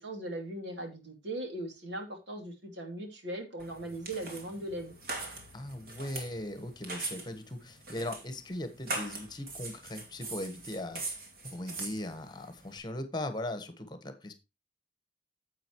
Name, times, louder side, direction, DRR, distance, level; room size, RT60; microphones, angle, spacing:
voice 1, 0.0-4.9, right 1 dB, 85° right, 2.8 m, -39 dB
sound 1, 3.6-12.8, right 3 dB, 50° right, 2.6 m, -42 dB
voice 2, 5.5-11.2 11.4-14.3, left 1 dB, 25° left, 1.3 m, -39 dB
10.0 x 7.7 x 3.0 m
head